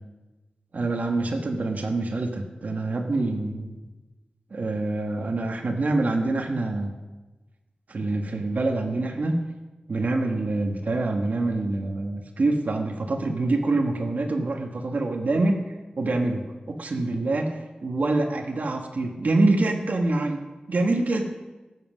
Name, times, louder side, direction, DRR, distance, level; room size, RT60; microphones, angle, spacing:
voice 1, 0.7-3.8 4.5-6.9 7.9-9.4 9.9-15.6 16.0-16.4 16.8-17.5 17.8-20.4 20.7-21.3, right 2 dB, 70° right, 2 dB, 1.4 m, -25 dB
18.5 x 7.8 x 6.1 m, 1.2 s
wide cardioid pair, 105°, 3 cm